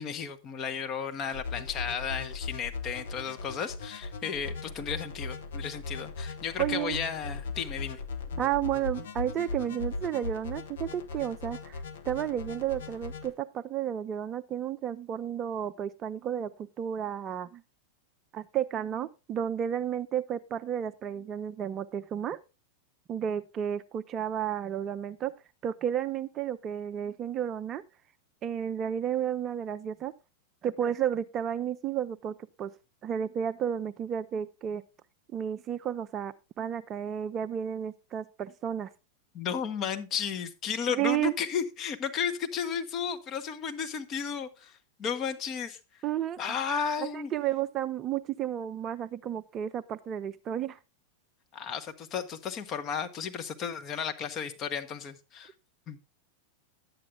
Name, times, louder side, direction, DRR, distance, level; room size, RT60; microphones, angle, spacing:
voice 1, 0.0-8.0 39.3-45.8 46.4-47.3 51.5-55.5 55.9-56.0, left 7 dB, 30° left, 1.2 m, -34 dB
sound 1, 1.3-13.3, left 4 dB, 60° left, 1.3 m, -38 dB
voice 2, 6.6-7.0 8.4-16.5 16.8-17.6 18.3-22.4 23.1-25.3 25.6-27.8 28.4-30.1 30.6-32.7 33.0-34.8 35.3-38.9 40.9-41.3 46.0-46.4 47.1-50.8, right 10 dB, 30° right, 0.5 m, -32 dB
11.0 x 8.7 x 3.6 m
figure-of-eight pair, 90°, 0 cm